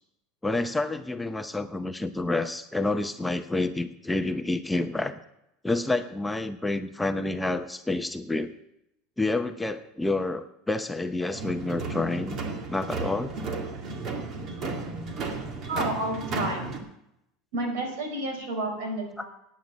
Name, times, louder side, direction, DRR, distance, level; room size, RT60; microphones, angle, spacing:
voice 1, 0.4-5.2 5.6-8.5 9.2-12.4 12.7-13.3 19.2-19.3, left 2 dB, 5° left, 8 dB, 0.7 m, -28 dB
sound 1, 11.3-16.8, right 3 dB, 45° right, 2.1 m, -34 dB
voice 2, 15.7-16.7 17.5-19.3, right 1 dB, 85° right, 3 dB, 4.5 m, -30 dB
9.5 x 9.4 x 7.6 m, 0.81 s
supercardioid pair, 130°, 0 cm